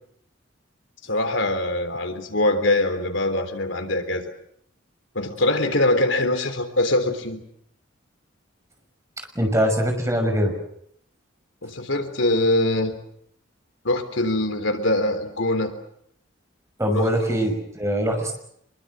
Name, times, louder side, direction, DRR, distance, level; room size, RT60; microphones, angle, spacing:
voice 1, 1.1-4.2 5.2-7.4 11.6-12.9 13.8-15.7 16.9-17.1, left 1 dB, 75° left, 7 dB, 3.6 m, -23 dB
voice 2, 9.2-10.5 16.8-18.3, equal, 15° right, 4 dB, 5.9 m, -23 dB
25.5 x 23.0 x 7.8 m, 0.71 s
head